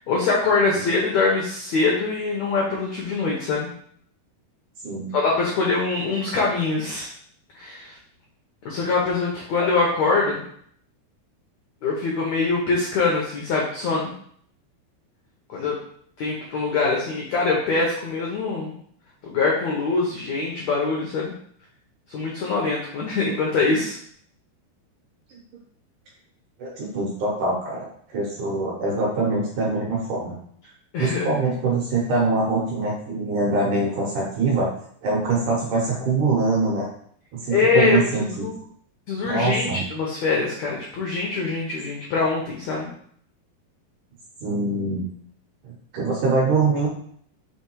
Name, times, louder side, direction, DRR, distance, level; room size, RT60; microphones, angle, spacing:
voice 1, 0.0-3.7 5.1-7.1 7.5-7.9 8.6-10.4 11.8-14.1 15.5-15.8 16.2-18.7 19.2-21.3 22.1-24.0 30.9-31.3 37.5-38.5 39.1-42.9, left 4 dB, 85° left, -3 dB, 1.5 m, -23 dB
voice 2, 26.6-27.9 28.1-30.4 31.0-34.7 35.0-36.9 37.3-38.4 39.3-39.8 44.4-45.0 45.6-46.9, right 3 dB, 70° right, -3 dB, 2.1 m, -23 dB
6.2 x 3.4 x 4.6 m, 0.63 s
omnidirectional pair, 4.7 m